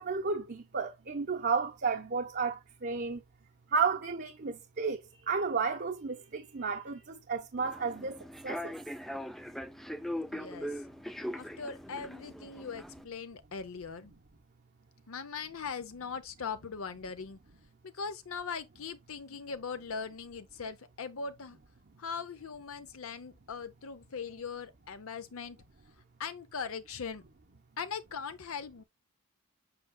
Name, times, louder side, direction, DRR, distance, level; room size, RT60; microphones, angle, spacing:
voice 1, 0.0-3.2 3.7-5.0 5.3-7.0 7.3-8.2 8.4-8.6, right 5 dB, 45° right, 0.8 m, -32 dB
Human voice / Subway metro underground, 7.6-13.0, equal, ahead, 0.4 m, -40 dB
voice 2, 10.3-10.8 11.3-14.1 15.1-17.4 17.9-21.6 22.0-25.6 26.2-27.2 27.8-28.8, left 5 dB, 65° left, 0.6 m, -40 dB
7.7 x 5.8 x 2.2 m
head